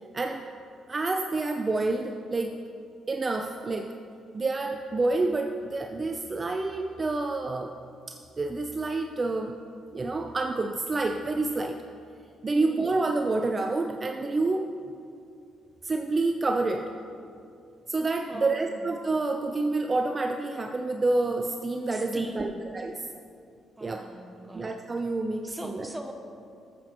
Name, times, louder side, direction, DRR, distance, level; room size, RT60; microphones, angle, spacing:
voice 1, 0.0-0.4 0.9-2.5 3.1-4.1 4.3-7.7 8.1-9.6 9.9-11.9 12.4-14.7 15.8-16.9 17.9-23.0 23.8-24.1 24.5-25.9, right 3 dB, 30° right, 4 dB, 0.4 m, -28 dB
voice 2, 12.5-12.9 18.3-18.9 21.9-22.6 23.8-24.6 25.4-26.1, right 1 dB, 5° right, 4 dB, 0.9 m, -41 dB
14.0 x 7.7 x 2.9 m, 2.4 s
cardioid pair, 90°, 0 cm